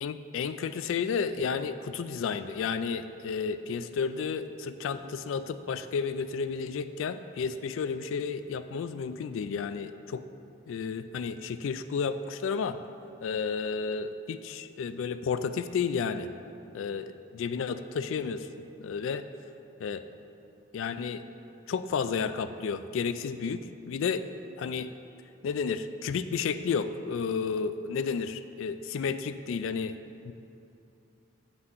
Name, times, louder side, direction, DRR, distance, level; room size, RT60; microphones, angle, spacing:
voice 1, 0.0-10.2 10.7-12.8 13.2-16.3 16.7-18.5 18.8-19.2 19.8-20.0 20.7-21.2 21.7-24.2 24.6-24.9 25.4-29.9 30.3-30.4, left 5 dB, 85° left, 11 dB, 0.3 m, -32 dB
7.9 x 6.0 x 5.5 m, 2.7 s
head